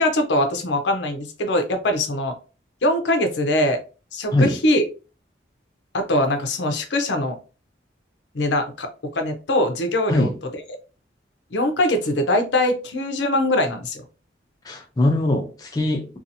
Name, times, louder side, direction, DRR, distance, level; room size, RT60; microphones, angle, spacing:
voice 1, 0.0-2.3 2.8-3.8 4.1-4.8 5.9-7.4 8.3-10.6 11.5-14.0, left 1 dB, 75° left, 0.6 m, -22 dB
voice 2, 14.6-16.2, left 1 dB, 20° left, 0.4 m, -21 dB
2.7 x 2.3 x 2.6 m
head